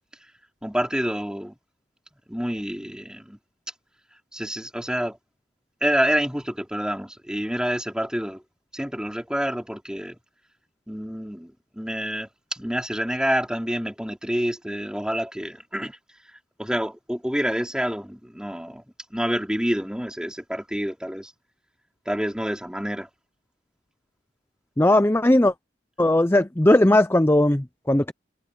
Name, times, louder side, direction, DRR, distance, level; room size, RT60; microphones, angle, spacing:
voice 1, 0.6-1.6 2.3-3.4 4.3-5.2 5.8-8.4 8.7-10.2 10.9-16.0 16.6-18.8 19.1-21.3 22.0-23.1, equal, 5° right, 4.9 m, -28 dB
voice 2, 24.8-25.5 26.0-28.1, left 1 dB, 15° left, 0.6 m, -18 dB
head